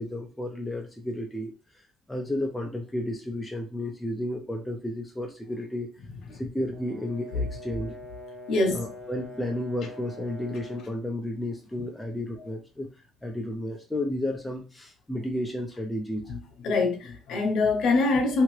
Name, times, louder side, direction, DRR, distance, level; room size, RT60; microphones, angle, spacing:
voice 1, 0.0-1.5 2.1-5.9 6.3-8.0 8.7-12.9 13.2-16.3, left 1 dB, 5° left, 0.4 m, -32 dB
Brass instrument, 6.7-11.0, left 1 dB, 25° right, 0.8 m, -44 dB
voice 2, 8.5-8.9 16.3-16.4 16.6-18.4, left 3 dB, 55° left, 0.7 m, -24 dB
2.7 x 2.4 x 3.0 m
cardioid pair, 175°, 0 cm